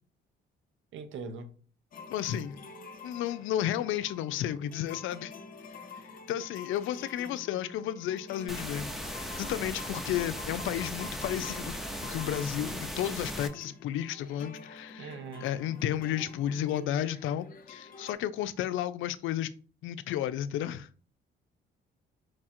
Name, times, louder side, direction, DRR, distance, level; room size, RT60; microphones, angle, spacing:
voice 1, 0.9-1.5 15.0-15.4, right 4 dB, 75° right, 0.7 m, -41 dB
sound 1, 1.9-18.1, left 4 dB, 45° left, 0.7 m, -48 dB
voice 2, 2.1-2.6 3.0-5.3 6.3-19.5 19.8-20.9, left 11 dB, 80° left, 0.4 m, -33 dB
sound 2, 8.5-13.5, equal, ahead, 0.7 m, -38 dB
4.6 x 2.4 x 4.3 m
cardioid pair, 90°, 20 cm